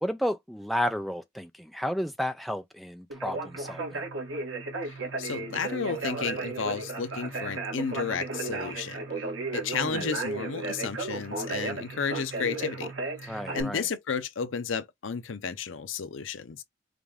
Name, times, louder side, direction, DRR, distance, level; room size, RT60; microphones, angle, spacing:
voice 1, 0.0-4.0 9.8-10.1 13.3-13.9, equal, ahead, 0.3 m, -32 dB
Conversation, 3.1-13.6, right 3 dB, 80° right, 1.7 m, -34 dB
voice 2, 4.9-9.0 9.5-12.9 13.2-16.6, left 6 dB, 85° left, 0.6 m, -32 dB
5.0 x 2.4 x 3.5 m
head